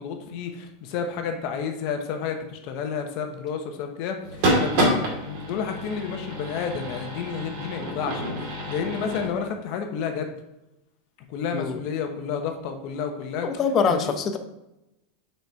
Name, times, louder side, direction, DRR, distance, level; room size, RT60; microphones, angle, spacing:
voice 1, 0.0-10.4 11.3-13.5 13.9-14.1, left 6 dB, 45° left, 5 dB, 1.0 m, -31 dB
sound 1, 4.2-9.3, right 1 dB, 50° right, 2.1 m, -28 dB
voice 2, 13.4-14.4, left 5 dB, 25° left, 7 dB, 0.7 m, -24 dB
5.9 x 4.5 x 4.5 m, 0.91 s
supercardioid pair, 160°, 0 cm